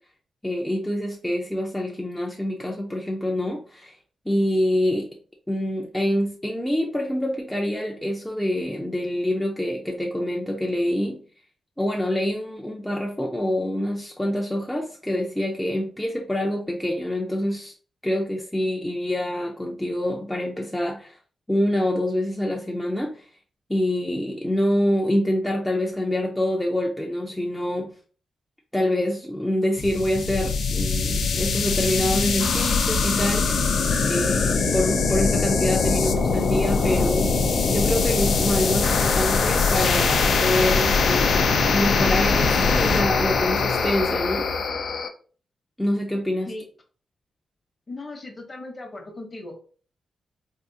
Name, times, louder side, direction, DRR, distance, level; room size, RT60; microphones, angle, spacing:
voice 1, 0.4-4.0 4.3-5.2 5.5-11.2 11.8-17.7 18.0-21.2 21.5-23.3 23.7-28.0 28.7-33.7 34.1-44.5 45.8-46.5, left 1 dB, 5° left, 0.4 m, -26 dB
sound 1, 29.8-45.1, left 4 dB, 65° left, 0.4 m, -22 dB
voice 2, 47.9-49.7, left 2 dB, 30° left, 0.8 m, -38 dB
3.6 x 2.4 x 2.7 m
wide cardioid pair, 130°, 0 cm